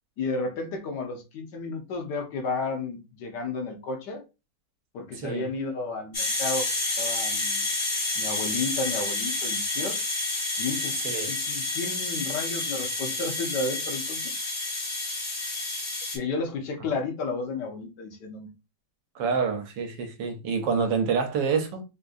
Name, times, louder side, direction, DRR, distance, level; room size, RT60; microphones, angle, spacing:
voice 1, 0.2-4.2 4.9-6.7 7.0-7.7 8.2-10.0 10.6-11.0 11.2-14.5 16.1-18.5, left 3 dB, 70° left, 1.4 m, -32 dB
sound 1, 6.1-16.2, left 2 dB, 35° left, 0.8 m, -29 dB
voice 2, 19.1-21.8, right 5 dB, 85° right, 1.3 m, -27 dB
3.6 x 2.6 x 2.5 m
omnidirectional pair, 1.9 m